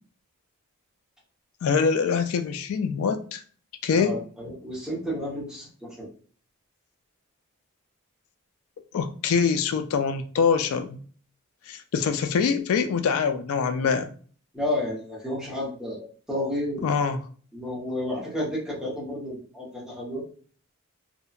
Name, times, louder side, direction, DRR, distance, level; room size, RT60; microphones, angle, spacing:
voice 1, 1.6-3.4 3.8-4.2 8.9-11.0 11.7-14.1 16.8-17.2, left 6 dB, 85° left, 0.3 m, -24 dB
voice 2, 4.0-6.1 14.5-16.8 17.5-20.2, left 1 dB, 5° right, 0.8 m, -31 dB
2.7 x 2.1 x 2.3 m
head